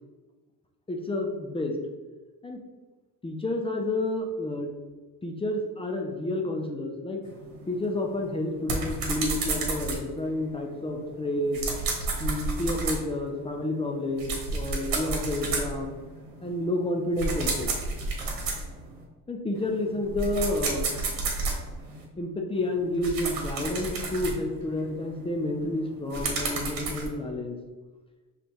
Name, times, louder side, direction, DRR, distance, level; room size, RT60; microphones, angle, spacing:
voice 1, 0.9-1.8 2.4-2.6 3.2-4.7 5.2-7.2 7.7-11.6 12.2-15.9 16.4-17.7 19.3-20.9 22.2-27.6, left 1 dB, 15° left, 2 dB, 0.5 m, -30 dB
sound 1, 7.2-19.0 19.6-22.0 22.6-27.1, right 3 dB, 60° right, 1.3 m, -32 dB
5.1 x 3.3 x 3.0 m, 1.3 s
cardioid pair, 115°, 38 cm